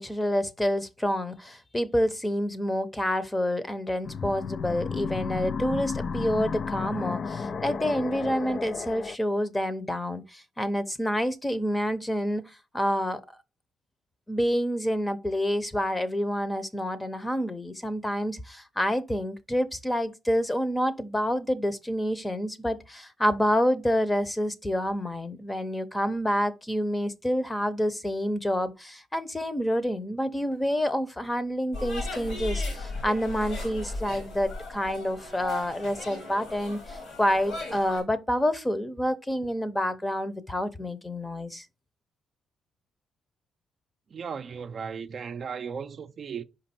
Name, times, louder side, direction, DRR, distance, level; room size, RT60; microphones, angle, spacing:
voice 1, 0.0-12.4 12.7-13.2 14.3-41.6, equal, 15° left, 0.8 m, -28 dB
sound 1, 4.0-9.2, left 5 dB, 50° left, 0.3 m, -33 dB
sound 2, 31.7-38.0, left 2 dB, 75° left, 3.4 m, -36 dB
voice 2, 44.1-46.4, right 6 dB, 50° right, 0.5 m, -36 dB
5.2 x 5.1 x 4.3 m
cardioid pair, 90°, 0 cm